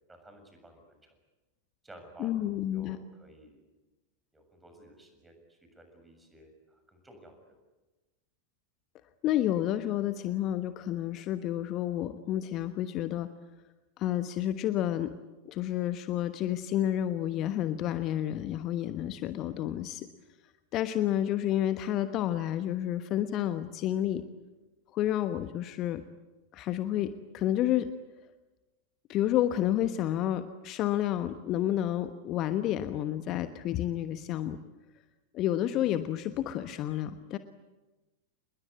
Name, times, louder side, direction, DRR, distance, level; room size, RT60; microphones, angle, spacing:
voice 1, 0.1-1.1 1.8-2.4 2.7-3.6 4.3-7.6, right 1 dB, 10° right, 5 dB, 7.1 m, -54 dB
voice 2, 2.2-3.0 9.2-13.3 14.0-15.1 15.5-20.1 20.7-24.2 24.9-26.0 26.5-27.9 29.1-34.6 35.3-37.4, left 12 dB, 35° left, 11 dB, 1.2 m, -30 dB
28.0 x 21.0 x 9.5 m, 1.1 s
figure-of-eight pair, 90°, 0 cm